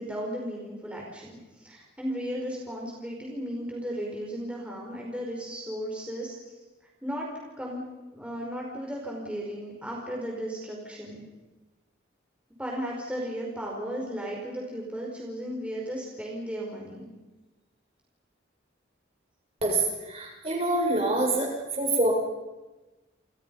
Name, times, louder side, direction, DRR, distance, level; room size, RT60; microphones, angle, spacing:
voice 1, 0.0-6.6 7.0-7.3 7.6-7.8 8.1-11.2 12.6-17.1, equal, 5° right, -2 dB, 4.9 m, -35 dB
voice 2, 19.6-22.1, right 2 dB, 30° right, 0 dB, 6.5 m, -26 dB
29.5 x 29.0 x 5.6 m, 1.2 s
head